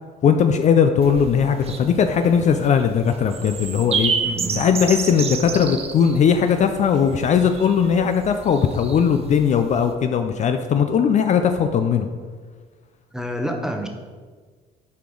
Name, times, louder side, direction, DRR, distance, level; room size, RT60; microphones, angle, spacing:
voice 1, 0.2-4.1 4.6-12.1, left 7 dB, 45° left, 7 dB, 0.4 m, -19 dB
sound 1, 1.0-9.9, right 5 dB, 35° right, 0.6 m, -30 dB
voice 2, 4.2-4.6 13.1-13.9, equal, 5° right, 3 dB, 0.8 m, -27 dB
8.3 x 4.8 x 3.9 m, 1.5 s
cardioid pair, 110°, 17 cm